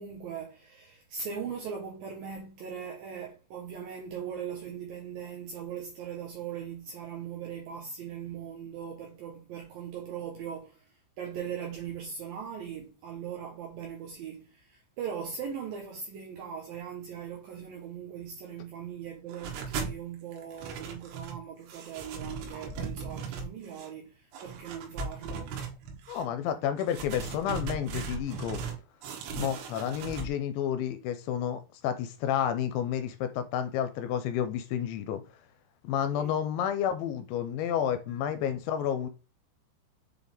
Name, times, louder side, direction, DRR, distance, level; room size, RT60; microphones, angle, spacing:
voice 1, 0.0-10.8 11.2-25.6 36.1-36.4 38.1-38.2, right 7 dB, 70° right, 2.2 m, -40 dB
sound 1, 19.3-20.0 20.3-21.4 21.7-23.9 24.3-26.2 26.8-28.8 29.0-30.3, right 5 dB, 90° right, 3.7 m, -38 dB
voice 2, 26.1-28.6 29.4-35.2 35.8-39.1, left 9 dB, 80° left, 2.9 m, -30 dB
7.5 x 4.1 x 3.5 m
omnidirectional pair, 5.5 m